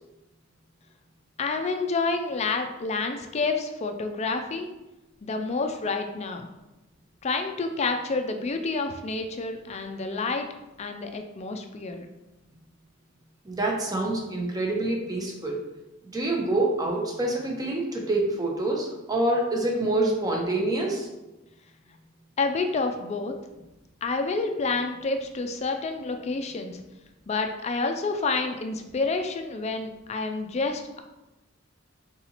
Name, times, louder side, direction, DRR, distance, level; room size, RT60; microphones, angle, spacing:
voice 1, 1.4-4.7 5.2-6.5 7.2-10.5 10.8-12.1 22.4-23.3 24.0-26.8 27.3-31.0, left 3 dB, 35° left, 5 dB, 0.4 m, -29 dB
voice 2, 13.4-15.6 16.1-21.1, right 2 dB, 20° right, 0 dB, 0.7 m, -26 dB
4.1 x 3.9 x 2.9 m, 1.0 s
head